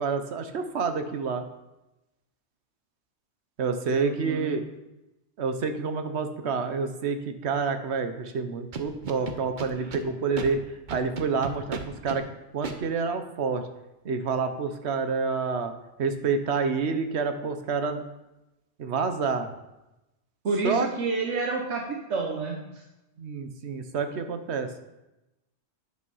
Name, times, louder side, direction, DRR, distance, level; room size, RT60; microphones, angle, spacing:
voice 1, 0.0-1.4 3.6-4.6 5.4-12.3 12.5-13.7 14.0-15.7 16.0-18.0 18.8-19.5 20.6-20.9 23.2-24.7, right 5 dB, 70° right, 8 dB, 1.1 m, -28 dB
voice 2, 3.9-4.6 9.7-10.0 20.4-21.8 22.1-22.8, right 4 dB, 90° right, 0 dB, 1.4 m, -30 dB
Scratching (performance technique), 8.7-10.0 10.4-10.5 10.9-12.2 12.6-12.8, right 5 dB, 45° right, 0.9 m, -34 dB
9.6 x 5.4 x 5.4 m, 0.96 s
omnidirectional pair, 1.2 m